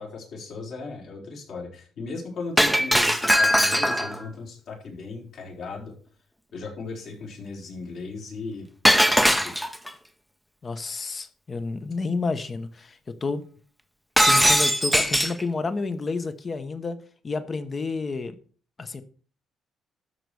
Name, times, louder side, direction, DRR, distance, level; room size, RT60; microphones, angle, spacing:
voice 1, 0.0-6.0 6.5-8.7 9.0-9.6, left 4 dB, 55° left, 4.3 m, -37 dB
Shatter, 2.6-4.2 8.9-9.9 14.2-15.4, equal, ahead, 0.8 m, -20 dB
voice 2, 10.6-13.4 14.3-17.0 17.2-18.4 18.8-19.0, left 4 dB, 25° left, 1.1 m, -30 dB
13.0 x 4.7 x 6.9 m
cardioid pair, 150°, 0 cm